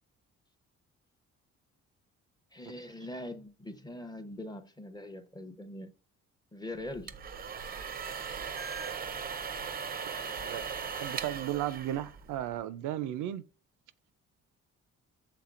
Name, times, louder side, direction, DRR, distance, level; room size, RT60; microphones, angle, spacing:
voice 1, 2.5-5.9 6.5-7.1, left 1 dB, 15° left, 0.7 m, -42 dB
sound 1, 6.9-12.6, right 6 dB, 30° right, 0.5 m, -38 dB
voice 2, 11.0-13.4, right 12 dB, 85° right, 0.5 m, -34 dB
5.9 x 3.7 x 2.4 m
cardioid pair, 90°, 30 cm